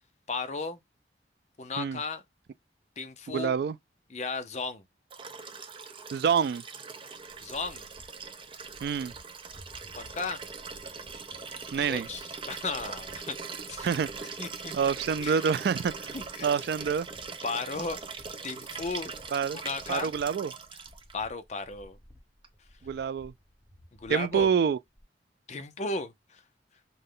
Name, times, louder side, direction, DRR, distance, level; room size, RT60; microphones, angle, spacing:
voice 1, 0.3-0.8 1.6-2.2 3.0-3.6 4.1-4.8 7.4-7.9 9.9-10.4 11.8-13.4 13.7-13.9 14.4-14.8 15.2-15.4 16.1-16.5 17.4-18.0 18.4-19.1 19.5-20.1 21.1-22.0 24.0-24.5 25.5-26.4, left 3 dB, 40° left, 0.6 m, -35 dB
voice 2, 3.3-3.8 6.1-6.6 8.8-9.1 11.7-12.1 13.8-14.1 14.7-16.2 16.4-17.1 19.3-19.6 19.9-20.5 22.8-23.3 24.1-24.8, right 6 dB, 60° right, 0.3 m, -27 dB
Liquid, 5.1-21.1 22.4-22.5, right 5 dB, 30° right, 0.6 m, -41 dB
sound 1, 7.2-25.0, equal, 5° left, 1.0 m, -56 dB
5.5 x 2.2 x 3.7 m
head